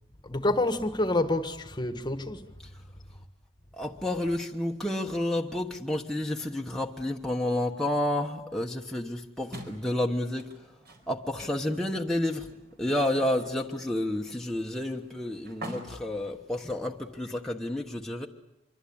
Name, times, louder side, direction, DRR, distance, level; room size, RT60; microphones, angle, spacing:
voice 1, 0.2-2.5, left 2 dB, 25° left, 1.4 m, -28 dB
voice 2, 3.7-10.7 11.1-12.5 12.8-18.3, left 1 dB, 5° left, 1.2 m, -30 dB
sound 1, 9.5-17.3, right 1 dB, 60° right, 4.5 m, -48 dB
25.5 x 23.5 x 8.7 m
head